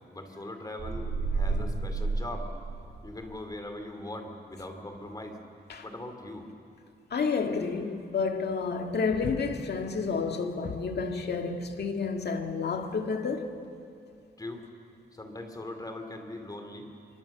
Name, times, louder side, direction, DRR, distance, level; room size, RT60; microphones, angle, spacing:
voice 1, 0.1-2.5 3.0-5.4 5.8-6.5 14.4-14.7 15.1-16.9, left 1 dB, 20° left, 2.6 m, -40 dB
sound 1, 0.8-3.2, right 3 dB, 90° right, 3.3 m, -31 dB
voice 2, 7.1-13.5, left 4 dB, 75° left, 1.9 m, -30 dB
27.0 x 24.5 x 7.2 m
wide cardioid pair, 145°, 17 cm